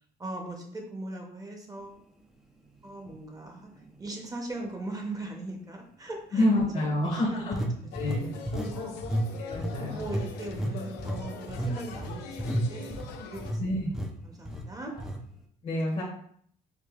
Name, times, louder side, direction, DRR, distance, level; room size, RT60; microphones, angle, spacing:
voice 1, 0.2-2.0 2.8-3.7 4.0-6.5 6.7-7.7 8.0-9.4 9.9-13.6 14.2-14.9, right 2 dB, 20° right, 1 dB, 0.7 m, -40 dB
sound 1, 3.1-3.2 3.8-4.0 7.5-8.8 9.0-9.3 9.5-13.6 13.9-14.1 14.5-14.6 15.0-15.2, right 1 dB, 5° right, 0.4 m, -32 dB
voice 2, 6.3-7.6 7.9-8.3 9.4-10.0 13.6-13.9 15.6-16.0, left 1 dB, 40° left, -3 dB, 0.8 m, -27 dB
sound 2, 7.9-13.5, left 5 dB, 90° left, 0.4 m, -42 dB
4.7 x 2.1 x 2.4 m, 0.63 s
cardioid pair, 110°, 17 cm